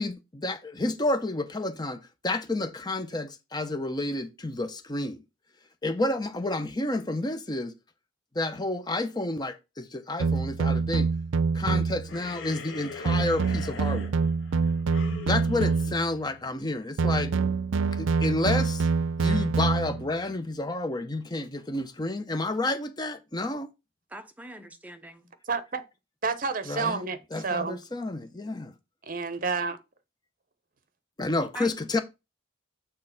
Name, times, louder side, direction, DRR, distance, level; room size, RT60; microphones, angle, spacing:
voice 1, 0.0-5.2 5.8-7.7 8.3-11.1 11.5-14.1 15.3-17.3 17.9-18.9 19.2-23.7 26.7-27.0 27.3-28.7 31.2-32.0, left 2 dB, 20° left, 0.8 m, -30 dB
sound 1, 10.2-12.1 13.1-16.2 17.0-20.1, right 4 dB, 80° right, 0.5 m, -26 dB
sound 2, 12.1-16.8, left 4 dB, 80° left, 1.4 m, -42 dB
voice 2, 24.1-25.3 31.4-32.0, right 1 dB, 10° right, 0.8 m, -43 dB
voice 3, 25.5-25.8 26.2-27.8 29.1-29.8, right 4 dB, 45° right, 0.9 m, -29 dB
6.6 x 3.8 x 5.7 m
head